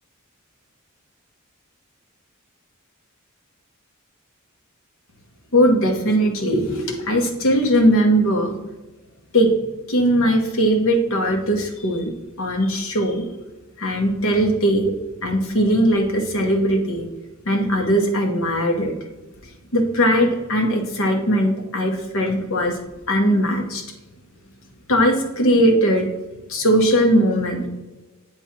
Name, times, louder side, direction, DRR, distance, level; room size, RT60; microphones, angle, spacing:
voice 1, 5.5-8.5 9.3-9.5 9.9-12.1 12.4-13.2 13.8-14.9 15.2-17.1 17.4-18.9 19.7-22.8 23.1-23.8 24.9-26.1 26.5-27.7, equal, 65° left, 2 dB, 1.1 m, -19 dB
8.4 x 3.3 x 4.4 m, 1.1 s
head